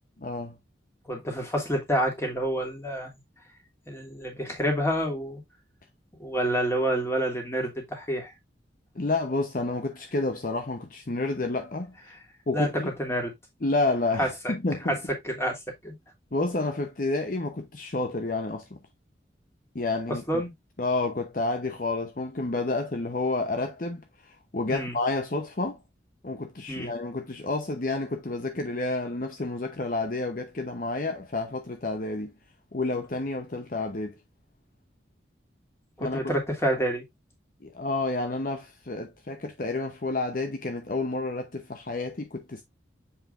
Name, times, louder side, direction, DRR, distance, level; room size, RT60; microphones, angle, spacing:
voice 1, 0.2-0.6 8.9-11.9 12.5-12.9 13.6-15.0 16.3-18.8 19.7-20.2 20.8-25.8 26.2-32.3 32.7-34.1 36.0-36.2 37.6-42.6, left 2 dB, 45° left, 0.9 m, -30 dB
voice 2, 1.1-3.1 3.9-5.4 6.2-8.3 12.5-13.3 14.2-14.3 14.9-15.0 15.2-15.6 15.8-16.0 20.3-20.5 24.6-25.0 26.7-26.9 36.0-37.0, equal, 15° left, 2.7 m, -28 dB
7.3 x 5.6 x 2.5 m
head